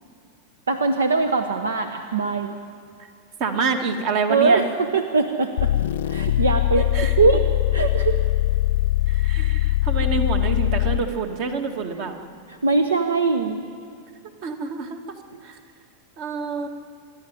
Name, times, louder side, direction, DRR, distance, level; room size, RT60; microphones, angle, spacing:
voice 1, 0.7-2.5 4.3-5.7 6.1-6.9 7.2-7.4 7.7-8.2 12.5-13.6 15.3-15.4, right 4 dB, 70° right, 8 dB, 1.0 m, -21 dB
voice 2, 3.4-4.6 6.7-7.1 9.1-12.2 14.4-15.0 15.4-15.6 16.2-16.7, right 5 dB, 45° right, 6 dB, 2.1 m, -27 dB
sound 1, 5.6-11.2, left 15 dB, 60° left, 0.6 m, -21 dB
26.0 x 11.0 x 9.3 m, 2.3 s
figure-of-eight pair, 90°, 0 cm